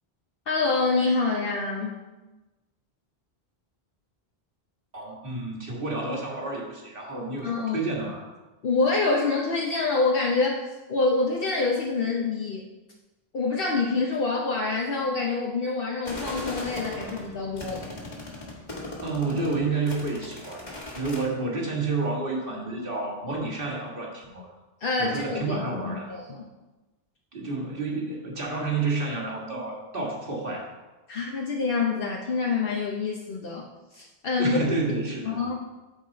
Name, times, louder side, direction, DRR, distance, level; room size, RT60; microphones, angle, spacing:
voice 1, 0.5-2.0 7.4-7.8 8.6-10.6 10.9-12.7 13.3-17.9 24.8-26.4 31.1-34.6 35.3-35.5, left 3 dB, 65° left, -2 dB, 1.0 m, -26 dB
voice 2, 4.9-8.3 19.0-24.5 25.0-26.1 27.3-30.7 34.4-35.4, right 3 dB, 60° right, -2 dB, 2.0 m, -30 dB
sound 1, 16.0-21.2, left 2 dB, 45° left, 1.8 m, -38 dB
13.0 x 4.7 x 4.0 m, 1.1 s
omnidirectional pair, 1.0 m